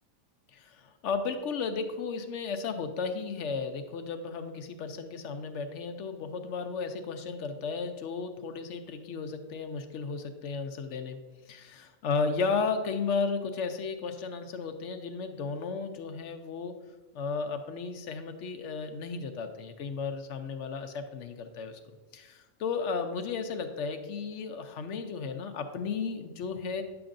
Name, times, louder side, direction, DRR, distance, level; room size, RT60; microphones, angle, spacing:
voice 1, 0.5-11.2 11.5-16.7 17.1-21.8 22.1-26.8, left 5 dB, 65° left, 7 dB, 0.9 m, -34 dB
9.5 x 6.9 x 2.5 m, 1.2 s
omnidirectional pair, 1.5 m